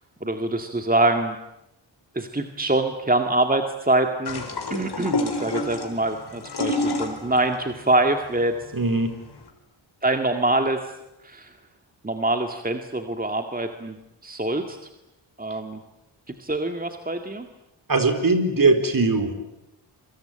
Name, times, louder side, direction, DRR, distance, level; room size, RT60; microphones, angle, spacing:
voice 1, 0.2-1.4 2.1-4.4 4.7-8.5 10.0-10.9 11.2-11.5 12.0-13.9 14.2-14.8 15.4-15.8 16.4-17.5, right 2 dB, 20° right, 5 dB, 2.1 m, -24 dB
sound 1, 4.3-9.5, left 2 dB, 55° left, 4.3 m, -29 dB
voice 2, 8.7-9.1 17.9-19.3, right 3 dB, 45° right, 8 dB, 4.4 m, -20 dB
27.0 x 23.5 x 9.0 m, 0.89 s
wide cardioid pair, 85°, 46 cm